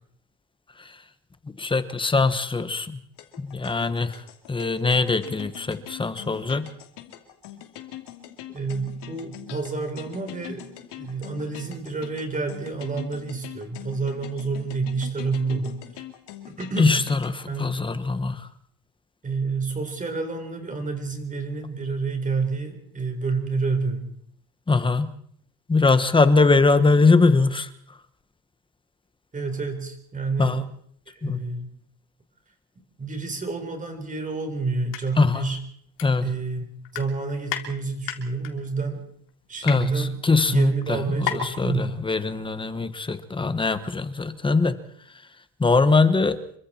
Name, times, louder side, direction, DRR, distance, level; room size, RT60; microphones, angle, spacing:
voice 1, 1.4-3.0 3.4-6.7 16.8-18.5 24.7-25.1 25.7-27.7 30.4-30.6 31.2-31.4 35.2-35.5 36.0-36.3 39.6-44.7 45.6-46.4, left 3 dB, 10° left, 12 dB, 1.2 m, -22 dB
sound 1, 3.2-17.4, left 12 dB, 65° left, 3.0 m, -43 dB
voice 2, 8.5-10.7 11.0-15.8 16.5-17.0 17.5-17.7 19.2-24.1 29.3-30.6 31.1-31.7 33.0-35.6 36.2-36.7 36.9-39.0 39.5-40.1 40.5-41.8, right 4 dB, 15° right, 5 dB, 4.1 m, -29 dB
sound 2, 34.8-35.0 35.4-35.5 36.0-36.6 36.8-37.7 38.1-38.5 39.1-39.8 40.5-40.6 40.8-40.9 41.2-41.6 41.9-42.0, left 12 dB, 80° left, 3.5 m, -31 dB
28.0 x 23.5 x 4.4 m, 0.64 s
cardioid pair, 165°, 44 cm